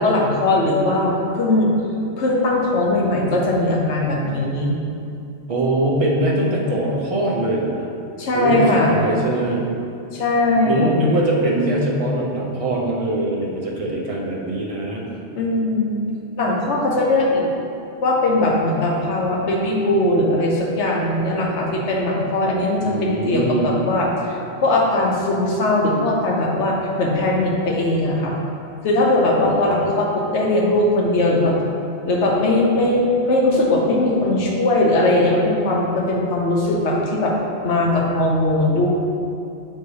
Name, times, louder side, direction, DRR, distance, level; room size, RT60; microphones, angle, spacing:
voice 1, 0.0-1.7 2.2-4.8 8.2-9.0 10.1-11.0 15.3-16.1 16.4-17.5 18.0-28.4 28.8-31.5 32.0-37.3 37.6-38.9, left 2 dB, 75° left, -2 dB, 1.2 m, -19 dB
voice 2, 5.5-7.9 8.3-9.7 10.6-15.0 22.8-23.8 29.5-29.8, right 1 dB, 35° right, -4 dB, 0.8 m, -22 dB
6.7 x 4.3 x 3.3 m, 2.6 s
omnidirectional pair, 1.2 m